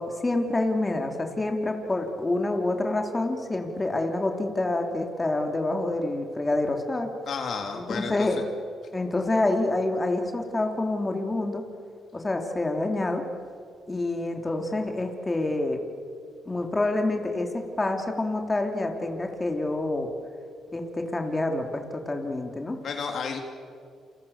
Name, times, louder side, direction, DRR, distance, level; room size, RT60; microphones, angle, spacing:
voice 1, 0.0-7.1 7.7-8.4 8.9-11.6 12.1-13.2 13.9-15.8 16.4-20.1 20.7-22.8, left 2 dB, 20° left, 3 dB, 3.3 m, -27 dB
voice 2, 7.3-8.3 22.8-23.4, left 5 dB, 60° left, 4 dB, 3.2 m, -31 dB
29.0 x 27.5 x 7.3 m, 2.2 s
cardioid pair, 90°, 0 cm